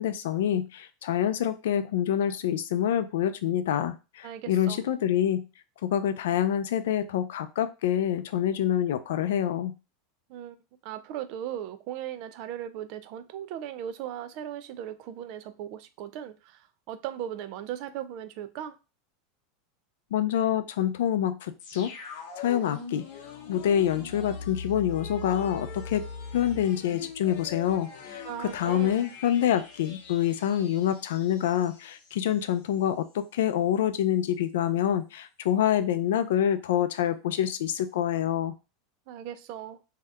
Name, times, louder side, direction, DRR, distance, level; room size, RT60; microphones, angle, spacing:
voice 1, 0.0-5.4 5.8-9.7 20.1-21.9 22.4-23.0 23.5-26.0 26.3-38.5, left 10 dB, 90° left, 0.4 m, -26 dB
voice 2, 4.2-4.8 10.3-10.6 10.8-18.8 28.2-29.0 39.1-39.8, right 10 dB, 45° right, 0.3 m, -38 dB
sound 1, 21.6-32.4 32.7-32.8, left 5 dB, 60° left, 0.8 m, -41 dB
2.7 x 2.3 x 3.2 m
supercardioid pair, 165°, 0 cm